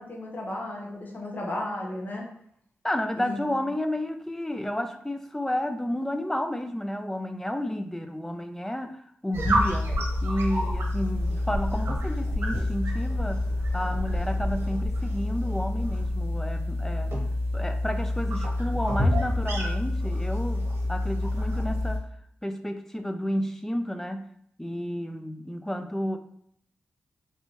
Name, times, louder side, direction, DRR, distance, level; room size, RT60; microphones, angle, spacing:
voice 1, 0.0-2.2 3.2-3.5, left 1 dB, 40° left, -2 dB, 0.9 m, -34 dB
voice 2, 2.8-9.9 10.2-13.5 13.7-17.1 17.5-22.1 22.4-24.3 24.6-26.2, left 1 dB, 10° left, 7 dB, 0.3 m, -31 dB
sound 1, 9.3-22.0, left 1 dB, 65° right, 0.9 m, -27 dB
3.3 x 2.7 x 3.0 m, 0.68 s
cardioid pair, 65°, 5 cm